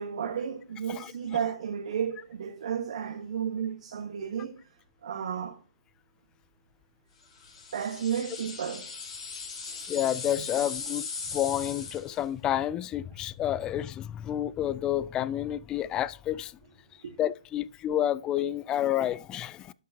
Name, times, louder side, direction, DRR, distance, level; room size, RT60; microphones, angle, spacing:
voice 1, 0.0-4.6 5.0-5.6 7.7-8.9 9.8-9.9 17.0-17.2, right 8 dB, 65° right, 1.2 m, -33 dB
sound 1, 7.4-12.2, left 5 dB, 45° left, 3.9 m, -38 dB
voice 2, 9.9-16.5 17.2-19.7, left 12 dB, 20° left, 0.3 m, -30 dB
12.0 x 5.6 x 2.7 m
hypercardioid pair, 135°, 4 cm